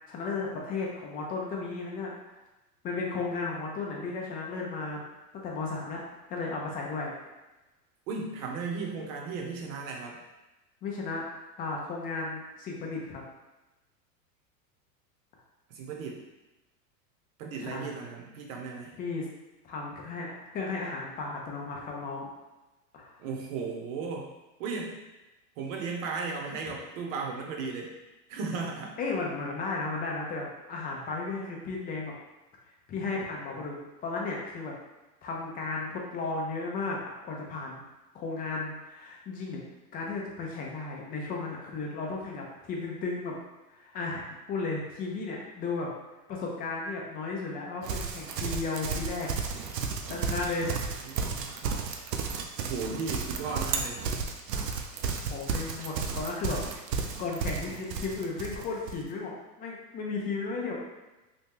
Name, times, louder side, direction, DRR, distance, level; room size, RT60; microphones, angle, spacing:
voice 1, 0.1-2.1 2.8-5.0 5.4-6.0 6.3-7.1 10.8-11.3 11.6-13.2 17.6-18.0 19.0-19.3 19.6-22.3 22.9-23.1 29.0-32.1 32.9-34.7 35.2-37.0 37.2-37.8 38.1-39.6 39.9-43.4 43.7-45.9 46.3-49.3 50.1-50.8 55.2-56.6 57.2-60.7, left 3 dB, 20° left, -1 dB, 0.4 m, -34 dB
voice 2, 8.1-10.2 15.7-16.3 17.4-19.0 23.2-24.3 24.6-25.0 25.6-27.9 28.3-29.0 50.8-51.9 52.6-54.1, right 4 dB, 55° right, 1 dB, 0.9 m, -36 dB
Livestock farm animals working animals, 47.8-59.0, right 5 dB, 85° right, 0.6 m, -33 dB
2.9 x 2.3 x 3.4 m, 1.1 s
hypercardioid pair, 115°, 48 cm